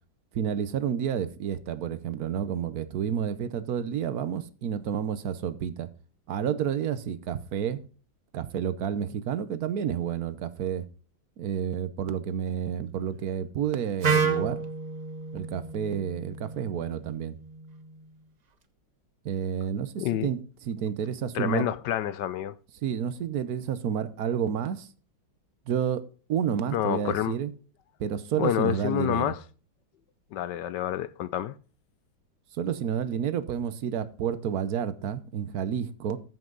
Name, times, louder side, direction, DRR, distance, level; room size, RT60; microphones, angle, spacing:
voice 1, 0.3-5.9 6.3-7.8 8.3-10.8 11.4-14.6 15.3-17.4 19.2-21.7 22.8-24.9 25.7-26.0 26.3-27.5 28.0-29.3 32.5-36.2, right 8 dB, 60° right, 1.2 m, -30 dB
Wind instrument woodwind instrument, 14.0-17.9, right 5 dB, 80° right, 0.3 m, -31 dB
voice 2, 20.0-20.3 21.3-22.5 26.7-27.3 28.4-29.4 30.3-31.5, left 11 dB, 70° left, 1.1 m, -28 dB
14.0 x 5.9 x 3.9 m
omnidirectional pair, 2.1 m